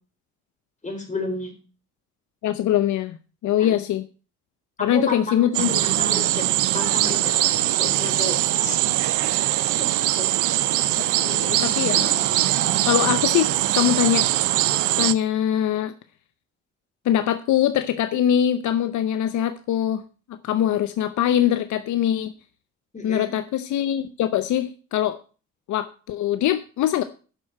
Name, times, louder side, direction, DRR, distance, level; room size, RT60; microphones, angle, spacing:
voice 1, 0.8-1.5 3.6-3.8 4.8-5.5 5.8-6.5 6.7-8.8 9.8-9.9 10.1-10.3 22.9-23.3, left 2 dB, 25° left, 2 dB, 4.2 m, -32 dB
voice 2, 2.4-3.2 3.4-4.1 4.8-5.7 11.2-12.3 12.9-14.3 15.0-15.9 17.0-20.0 20.3-22.3 23.0-25.2 25.7-27.0, left 10 dB, 75° left, 11 dB, 0.8 m, -22 dB
sound 1, 5.5-15.1, right 14 dB, 85° right, 0.6 m, -22 dB
7.6 x 6.5 x 7.6 m, 0.36 s
cardioid pair, 90°, 30 cm